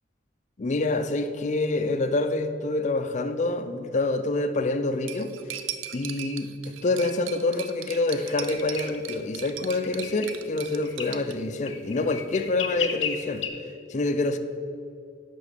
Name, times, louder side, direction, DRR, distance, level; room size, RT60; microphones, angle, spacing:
voice 1, 0.6-5.3 5.9-13.5 13.9-14.4, left 2 dB, 40° left, 0.4 m, -27 dB
Cutlery silverware, 5.1-11.3, right 10 dB, 85° right, 0.5 m, -38 dB
sound 1, 8.6-8.9 9.8-10.4 10.8-11.2 11.7-13.5, left 8 dB, 85° left, 0.8 m, -33 dB
10.5 x 3.8 x 6.6 m
head